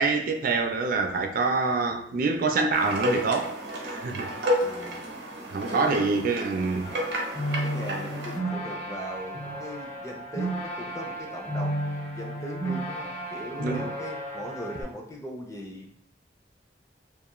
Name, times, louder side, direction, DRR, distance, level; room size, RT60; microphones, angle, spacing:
voice 1, 0.0-3.6 3.8-4.3 5.5-7.0 13.6-13.9, right 4 dB, 55° right, 0.4 m, -26 dB
sound 1, 2.7-8.4, equal, 85° right, 0.7 m, -31 dB
voice 2, 4.6-5.0 5.6-6.3 7.6-16.1, equal, 20° left, 0.5 m, -39 dB
sound 2, 6.8-14.8, right 1 dB, 40° left, 1.1 m, -33 dB
2.4 x 2.4 x 2.9 m
head